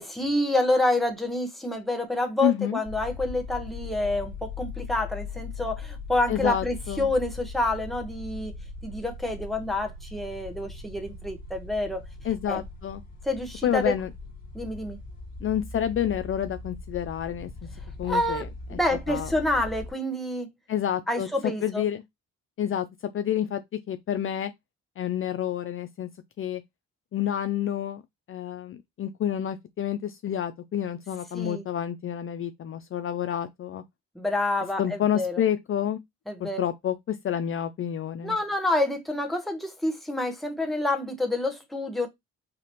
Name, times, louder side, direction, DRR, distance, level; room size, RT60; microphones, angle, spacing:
voice 1, 0.0-8.5 8.8-12.0 12.5-12.6 13.2-13.9 14.5-15.0 18.0-20.5 21.1-21.8 31.3-31.6 34.1-35.3 36.3-36.6 38.2-42.1, left 1 dB, ahead, 1.2 m, -28 dB
voice 2, 2.4-2.8 6.3-7.1 12.2-13.0 13.6-14.1 15.4-17.5 18.0-18.8 19.1-19.3 20.7-22.0 22.6-22.9 23.1-23.6 23.9-24.5 25.0-26.1 26.4-26.6 27.1-28.0 28.3-33.8 34.8-36.0 36.4-38.4, left 10 dB, 45° left, 0.5 m, -29 dB
sound 1, 2.8-19.9, left 3 dB, 30° left, 1.8 m, -40 dB
5.0 x 2.9 x 3.0 m
cardioid pair, 90°, 30 cm